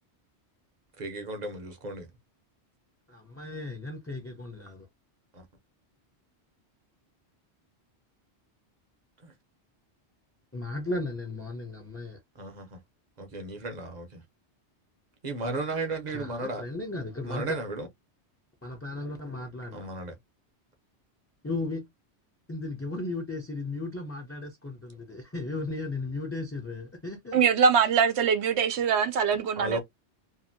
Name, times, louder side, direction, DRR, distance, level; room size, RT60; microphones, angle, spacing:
voice 1, 1.0-2.1 5.3-5.5 9.2-9.3 12.4-12.8 13.2-14.2 15.2-16.7 17.2-17.9 19.7-20.2 29.6-29.8, right 2 dB, 45° right, 0.8 m, -34 dB
voice 2, 3.1-4.9 10.5-12.2 16.1-17.6 18.6-19.9 21.4-21.8 22.5-27.4, left 2 dB, 15° left, 0.6 m, -35 dB
voice 3, 27.3-29.8, right 6 dB, 75° right, 0.9 m, -23 dB
2.7 x 2.6 x 2.6 m
omnidirectional pair, 1.2 m